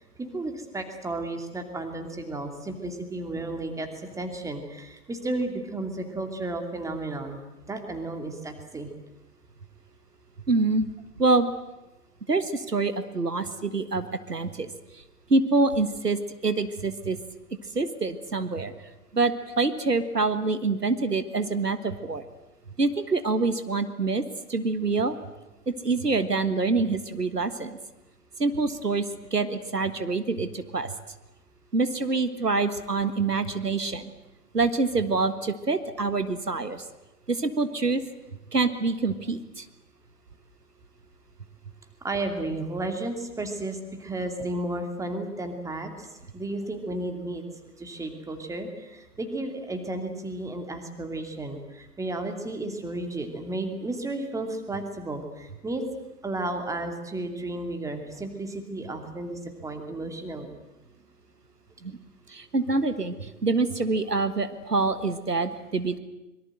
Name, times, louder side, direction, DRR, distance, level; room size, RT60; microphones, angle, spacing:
voice 1, 0.2-7.4 7.6-8.9 42.0-47.4 47.8-55.8 56.2-60.6, right 2 dB, 5° right, 5 dB, 2.7 m, -33 dB
voice 2, 10.5-10.9 11.2-11.5 12.3-14.7 15.3-17.2 17.7-18.7 19.1-22.2 22.8-24.2 24.5-25.2 25.7-27.8 28.4-29.1 29.3-30.9 31.7-34.1 34.5-36.8 37.3-38.0 38.5-39.7 61.8-61.9 62.3-66.0, right 3 dB, 85° right, 11 dB, 1.7 m, -26 dB
25.0 x 23.0 x 7.9 m, 1.0 s
figure-of-eight pair, 110°, 46 cm